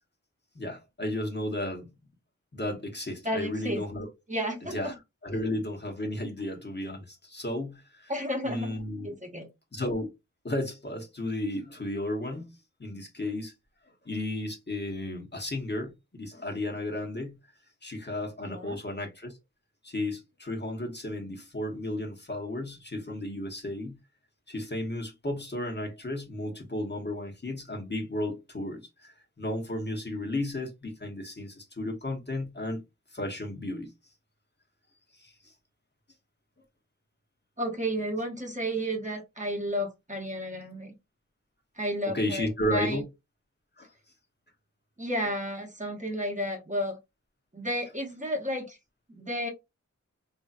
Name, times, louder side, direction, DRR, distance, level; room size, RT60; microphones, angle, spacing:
voice 1, 0.5-1.9 2.5-4.1 4.7-4.9 5.2-8.1 8.4-9.1 9.7-10.1 10.4-12.5 12.8-13.5 14.0-17.4 17.8-19.3 19.8-24.0 24.5-32.8 33.1-33.9 35.2-35.5 42.1-43.0 43.8-43.9, left 1 dB, 35° left, 1.0 m, -33 dB
voice 2, 3.2-3.8 4.3-4.9 8.1-9.5 18.4-18.7 37.6-40.9 41.8-43.0 45.0-47.0 47.5-48.8 49.1-49.5, equal, 25° right, 1.0 m, -32 dB
3.1 x 2.7 x 2.4 m
cardioid pair, 50°, 31 cm